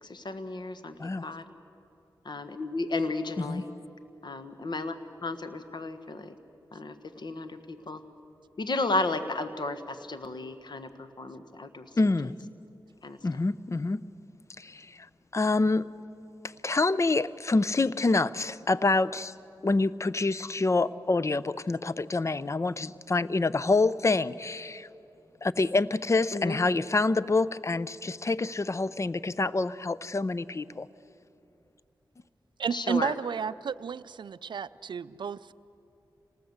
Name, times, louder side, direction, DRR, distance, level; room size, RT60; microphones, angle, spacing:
voice 1, 0.0-1.4 2.2-3.7 4.2-5.0 5.2-6.3 6.7-8.0 8.6-11.9 13.0-13.2 26.3-26.6 32.7-33.1, left 2 dB, 60° left, 9 dB, 1.4 m, -33 dB
voice 2, 12.0-12.3 13.2-14.0 14.6-15.1 15.3-15.8 16.6-19.3 19.6-24.9 25.4-30.9, left 3 dB, 35° left, 17 dB, 0.6 m, -27 dB
voice 3, 32.6-35.5, right 6 dB, 70° right, 13 dB, 0.4 m, -32 dB
26.5 x 19.0 x 8.0 m, 2.8 s
cardioid pair, 55°, 8 cm